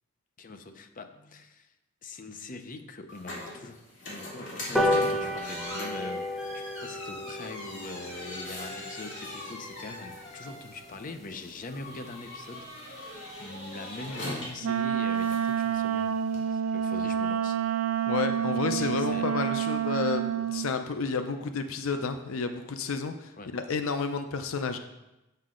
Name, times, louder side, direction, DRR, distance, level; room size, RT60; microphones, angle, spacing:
voice 1, 0.4-1.7 2.0-16.1 16.5-17.6 18.7-19.5 21.9-22.0 23.4-23.5, left 3 dB, 40° left, 8 dB, 0.6 m, -43 dB
sound 1, 3.1-16.4, left 1 dB, 60° left, 2.4 m, -42 dB
sound 2, 4.7-11.5 11.9-12.0 12.3-12.4 12.7-12.8 13.1-13.2 13.5-13.8 14.2-14.3, left 1 dB, ahead, 0.9 m, -33 dB
Wind instrument woodwind instrument, 14.6-20.7, right 8 dB, 85° right, 0.3 m, -28 dB
voice 2, 18.1-24.8, left 5 dB, 80° left, 8 dB, 0.5 m, -31 dB
7.6 x 6.2 x 3.8 m, 0.97 s
head